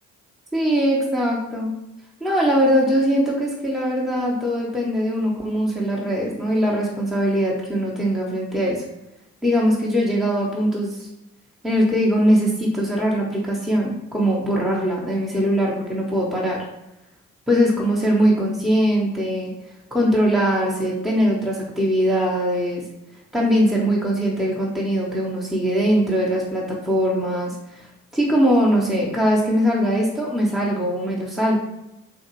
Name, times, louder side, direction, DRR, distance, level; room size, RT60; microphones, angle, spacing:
voice 1, 0.5-1.7 2.2-8.8 9.4-11.1 11.6-16.6 17.5-19.5 19.9-22.8 23.3-31.6, equal, ahead, -3 dB, 0.8 m, -21 dB
3.7 x 2.8 x 2.9 m, 0.92 s
hypercardioid pair, 50°, 41 cm